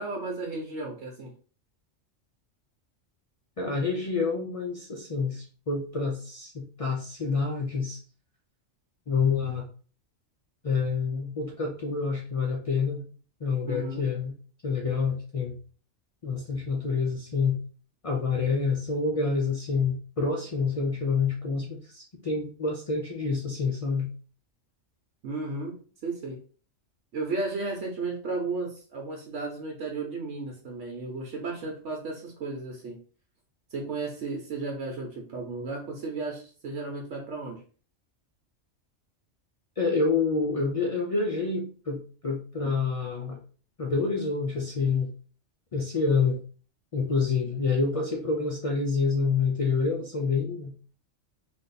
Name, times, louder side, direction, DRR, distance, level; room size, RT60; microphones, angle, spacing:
voice 1, 0.0-1.3 13.6-14.1 25.2-25.8 26.0-26.4 27.1-33.0 33.7-37.6, right 3 dB, 70° right, -1 dB, 1.1 m, -34 dB
voice 2, 3.6-8.0 9.1-9.7 10.6-13.0 13.4-14.3 14.6-15.5 16.2-17.6 18.0-24.1 39.8-43.4 43.8-45.1 45.7-46.4 46.9-50.7, left 4 dB, 65° left, 0 dB, 0.3 m, -27 dB
3.3 x 2.4 x 4.0 m, 0.40 s
omnidirectional pair, 1.3 m